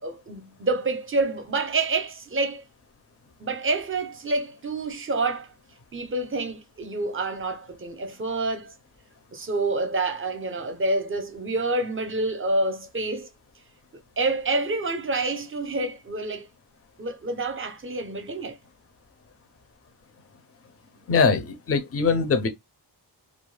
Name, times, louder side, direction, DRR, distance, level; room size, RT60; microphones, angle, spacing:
voice 1, 0.0-2.6 3.4-5.5 5.9-8.7 9.3-13.3 14.2-16.5 17.0-18.6, right 2 dB, 30° right, 0.5 m, -28 dB
voice 2, 21.1-22.5, left 5 dB, 35° left, 0.5 m, -22 dB
2.4 x 2.2 x 3.1 m
wide cardioid pair, 120°, 41 cm